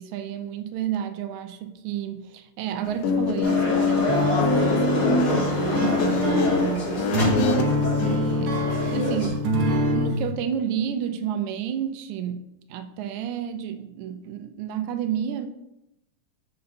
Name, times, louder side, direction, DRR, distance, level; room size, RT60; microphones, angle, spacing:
voice 1, 0.0-7.1 8.0-9.5 9.9-15.5, right 9 dB, 80° right, 1.9 m, -31 dB
Guitar, 2.9-8.2, left 4 dB, 75° left, 1.6 m, -25 dB
sound 1, 3.4-9.3, left 1 dB, 30° left, 1.2 m, -27 dB
sound 2, 4.1-10.2, left 1 dB, 60° right, 1.5 m, -26 dB
7.8 x 6.7 x 2.6 m
omnidirectional pair, 3.4 m